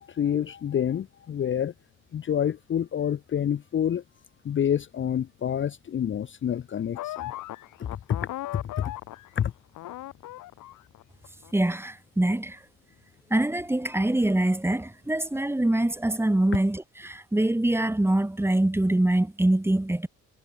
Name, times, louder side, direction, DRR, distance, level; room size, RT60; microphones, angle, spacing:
voice 1, 0.0-1.7 2.1-4.0 4.4-7.3 7.8-8.9 9.4-9.5, left 9 dB, 40° left, 0.7 m, -28 dB
sound 1, 7.0-9.5 9.8-11.5, left 15 dB, 85° left, 2.3 m, -38 dB
voice 2, 11.5-12.6 13.3-20.1, right 1 dB, 10° right, 2.0 m, -24 dB
cardioid pair, 90°, 30 cm